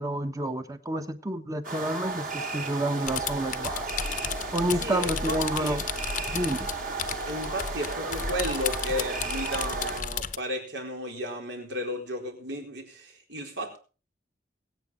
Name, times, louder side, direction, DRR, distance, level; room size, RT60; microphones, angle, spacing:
voice 1, 0.0-3.8 4.5-5.9 6.3-6.7, right 1 dB, 20° right, 1.2 m, -29 dB
coyotes going crazy before dawn, 1.6-10.0, right 3 dB, 50° right, 3.5 m, -34 dB
sound 1, 3.1-10.4, left 6 dB, 45° left, 0.8 m, -34 dB
voice 2, 4.8-5.8 7.3-13.8, equal, 70° right, 4.3 m, -33 dB
23.0 x 8.8 x 4.1 m
head